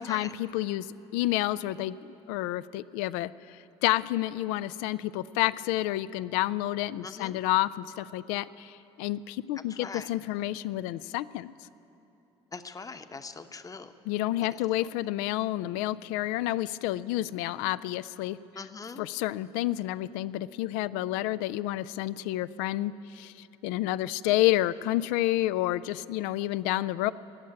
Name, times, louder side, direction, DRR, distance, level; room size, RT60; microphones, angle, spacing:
voice 1, 0.1-0.9 1.1-2.0 2.3-11.5 14.1-18.4 19.0-23.3 23.6-27.1, left 15 dB, 70° left, 17 dB, 0.4 m, -29 dB
voice 2, 7.0-7.4 9.8-10.1 12.5-13.9 14.8-14.9 18.6-19.1 24.2-24.3, left 4 dB, 25° left, 9 dB, 0.9 m, -41 dB
19.0 x 7.4 x 9.8 m, 2.9 s
hypercardioid pair, 55°, 14 cm